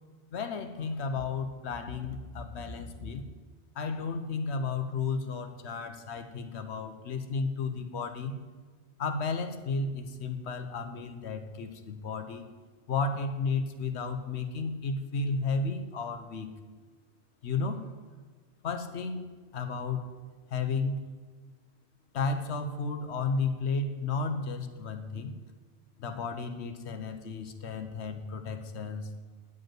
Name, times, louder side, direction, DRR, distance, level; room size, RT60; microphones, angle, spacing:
voice 1, 0.3-3.3 3.7-8.4 9.0-12.5 12.9-16.5 17.4-17.9 18.6-19.3 19.5-20.0 20.5-21.0 22.1-25.4 26.0-29.1, left 4 dB, 70° left, 8 dB, 1.1 m, -33 dB
11.0 x 5.3 x 7.6 m, 1.5 s
omnidirectional pair, 1.2 m